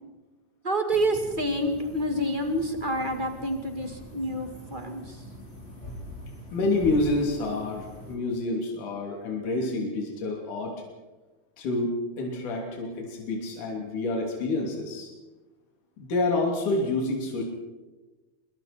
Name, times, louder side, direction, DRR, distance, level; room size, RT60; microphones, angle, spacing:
voice 1, 0.6-5.2, right 1 dB, 20° right, 4 dB, 1.6 m, -28 dB
sound 1, 0.9-8.2, equal, 15° left, 5.5 m, -43 dB
voice 2, 6.5-10.7 11.6-11.9 12.2-15.1 16.0-17.4, left 2 dB, 60° left, 0 dB, 4.6 m, -28 dB
26.0 x 23.0 x 4.5 m, 1.2 s
omnidirectional pair, 4.2 m